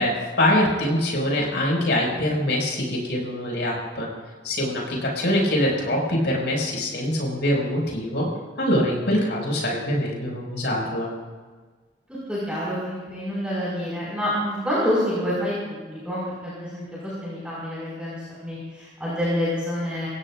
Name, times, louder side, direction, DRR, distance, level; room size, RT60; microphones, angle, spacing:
voice 1, 0.0-4.1 4.4-8.3 8.6-11.1, left 1 dB, 70° left, -2 dB, 5.9 m, -24 dB
voice 2, 12.3-18.2 18.4-20.1, equal, 5° right, -9 dB, 5.5 m, -27 dB
27.5 x 16.0 x 2.6 m, 1.4 s
head